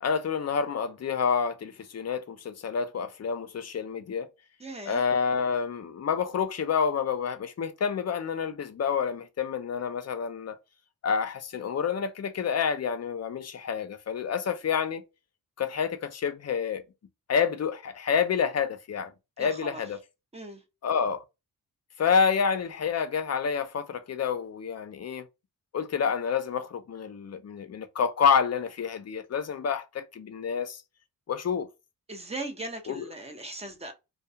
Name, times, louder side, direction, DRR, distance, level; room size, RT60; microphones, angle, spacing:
voice 1, 0.0-4.3 4.9-10.6 11.0-15.0 15.6-16.8 17.3-19.1 19.4-20.0 20.8-21.2 22.0-25.3 25.7-30.8 31.3-31.7 32.9-33.1, left 6 dB, 45° left, 0.6 m, -28 dB
voice 2, 4.6-5.0 19.4-19.8 20.3-20.6 32.1-33.9, right 2 dB, 20° right, 0.9 m, -38 dB
2.3 x 2.2 x 2.7 m
cardioid pair, 80°, 35 cm